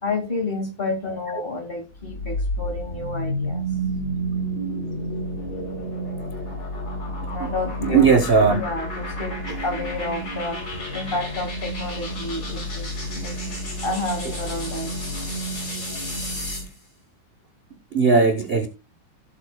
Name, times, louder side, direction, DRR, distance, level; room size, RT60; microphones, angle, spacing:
voice 1, 0.0-3.6 7.3-8.2 8.6-10.6 10.9-12.9 13.1-13.3 13.8-15.0, left 2 dB, 30° left, 5 dB, 2.2 m, -30 dB
sound 1, 2.0-16.7, equal, 65° left, 6.2 m, -30 dB
voice 2, 7.9-8.6 9.5-9.7 14.2-14.3 17.9-18.7, right 5 dB, 45° right, 9 dB, 0.7 m, -18 dB
16.5 x 7.3 x 2.2 m, 0.27 s
omnidirectional pair, 2.1 m